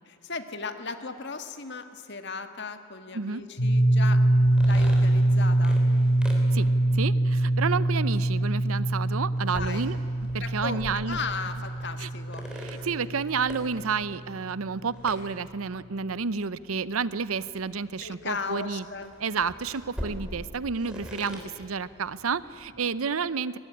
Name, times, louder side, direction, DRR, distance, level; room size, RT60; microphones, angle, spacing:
voice 1, 0.1-4.2 4.6-5.8 9.5-9.9 10.3-12.5 18.0-19.1, left 4 dB, 50° left, 8 dB, 1.6 m, -36 dB
sound 1, 3.6-14.2, right 1 dB, 85° left, 4.5 m, -24 dB
sound 2, 4.3-22.9, equal, 5° right, 3.9 m, -45 dB
voice 2, 6.9-10.0 10.3-11.2 12.0-12.1 12.5-18.8 19.2-23.6, right 5 dB, 75° right, 17 dB, 0.7 m, -30 dB
23.0 x 19.5 x 10.0 m, 2.7 s
head